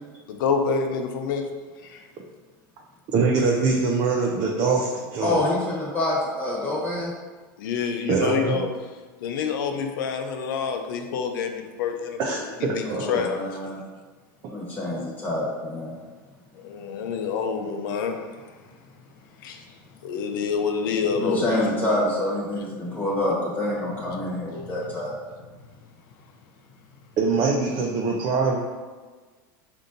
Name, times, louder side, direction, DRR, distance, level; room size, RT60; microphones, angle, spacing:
voice 1, 0.3-1.4 1.8-2.0 7.6-8.7 9.2-12.4 12.7-13.4 13.6-13.7 16.5-18.2 19.4-19.6 20.0-21.4, left 6 dB, 75° left, 5 dB, 0.5 m, -27 dB
voice 2, 3.1-5.4 8.1-8.6 12.2-13.2 21.3-21.4 27.2-28.6, right 4 dB, 40° right, -1 dB, 0.5 m, -23 dB
voice 3, 5.2-7.1 12.8-13.8 14.5-15.9 21.2-25.1, left 1 dB, 15° left, -5 dB, 1.2 m, -27 dB
5.1 x 2.7 x 2.6 m, 1.4 s
supercardioid pair, 130°, 11 cm